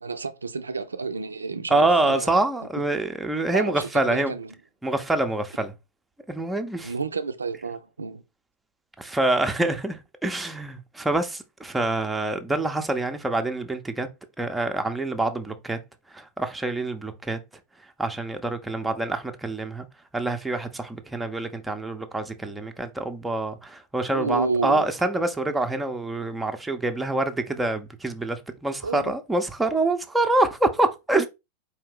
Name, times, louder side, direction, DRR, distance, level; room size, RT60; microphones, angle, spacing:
voice 1, 0.0-2.3 3.5-4.5 6.8-8.2 24.1-24.9 28.8-29.1, right 4 dB, 75° right, 0.4 m, -30 dB
voice 2, 1.7-4.3 4.8-5.7 6.3-6.9 9.0-14.1 14.4-15.8 16.1-17.4 18.0-19.9 20.1-31.3, right 2 dB, 5° right, 0.6 m, -26 dB
4.6 x 2.8 x 3.5 m
figure-of-eight pair, 90°, 0 cm